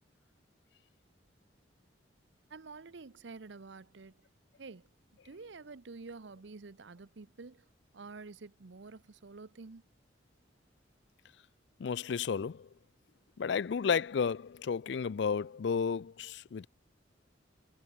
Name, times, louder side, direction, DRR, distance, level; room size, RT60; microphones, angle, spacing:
voice 1, 2.5-4.2 4.6-4.9 5.2-7.7 7.9-9.8, right 4 dB, 75° right, 0.8 m, -49 dB
voice 2, 11.8-12.7 13.4-16.7, left 6 dB, 65° left, 0.4 m, -32 dB
head